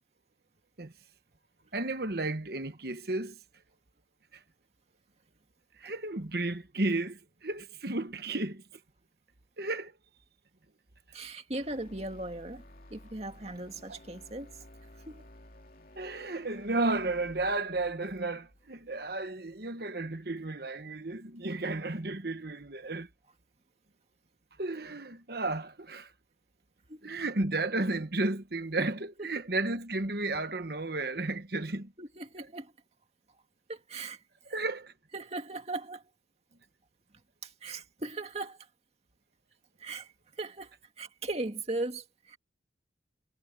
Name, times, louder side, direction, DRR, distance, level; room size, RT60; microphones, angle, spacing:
voice 1, 1.7-3.4 4.3-4.4 5.8-8.6 9.6-9.9 13.9-14.0 15.9-23.1 24.6-26.1 27.0-31.9 34.5-34.9, right 2 dB, 55° right, 1.3 m, -33 dB
voice 2, 11.1-12.6 12.9-14.6 15.1-15.2 26.9-27.1 29.2-29.3 32.0-32.7 33.7-34.2 35.1-36.1 37.4-38.7 39.8-42.4, right 2 dB, 35° right, 2.3 m, -38 dB
sound 1, 11.5-19.7, left 1 dB, 50° left, 2.8 m, -54 dB
head